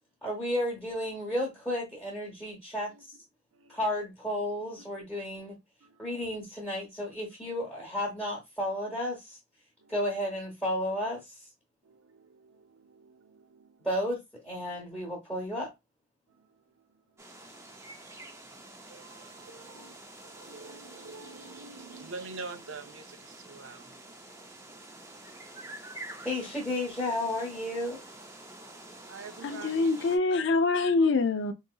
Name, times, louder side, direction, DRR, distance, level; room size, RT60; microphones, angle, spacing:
voice 1, 0.2-3.2 3.7-5.6 6.0-9.4 9.9-11.5 13.8-15.7 26.2-28.0, left 1 dB, 5° left, 0.9 m, -33 dB
voice 2, 3.5-3.9 5.8-6.3 9.8-9.9 11.8-13.9 16.3-17.0 18.9-20.0 20.2-26.3 28.6-29.9, right 4 dB, 65° right, 0.5 m, -48 dB
sound 1, 17.2-30.2, right 2 dB, 15° right, 0.4 m, -48 dB
voice 3, 29.4-31.5, left 3 dB, 55° left, 0.4 m, -25 dB
3.8 x 2.7 x 2.2 m
head